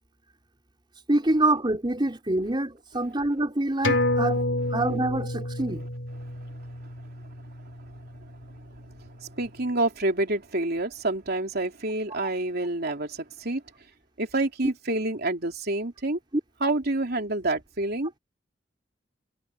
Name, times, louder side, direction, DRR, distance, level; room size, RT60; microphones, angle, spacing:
voice 1, 1.1-4.4 4.7-5.9, right 2 dB, 25° right, 4.1 m, -26 dB
sound 1, 3.8-8.8 9.1-9.2, left 1 dB, 85° left, 2.9 m, -29 dB
voice 2, 6.2-7.3 7.9-13.6 14.2-16.2 16.6-18.1, right 2 dB, 55° right, 3.3 m, -29 dB
head